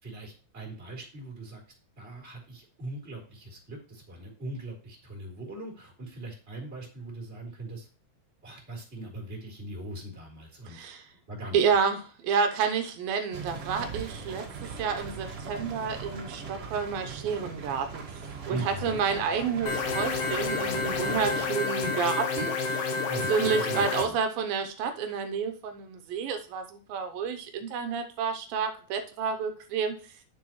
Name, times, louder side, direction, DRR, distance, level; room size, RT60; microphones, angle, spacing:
voice 1, 0.0-1.6 2.0-7.9 8.4-10.9 11.3-11.6 18.5-19.0 23.1-24.2, right 2 dB, 20° right, -2 dB, 3.4 m, -40 dB
voice 2, 10.7-11.1 11.5-18.0 18.5-23.0 23.3-29.9, right 6 dB, 85° right, 7 dB, 2.6 m, -30 dB
sound 1, 13.3-21.5, right 4 dB, 45° right, 2.4 m, -40 dB
sound 2, 19.7-24.0, left 4 dB, 70° left, 2.9 m, -29 dB
9.3 x 7.0 x 3.1 m, 0.38 s
omnidirectional pair, 4.1 m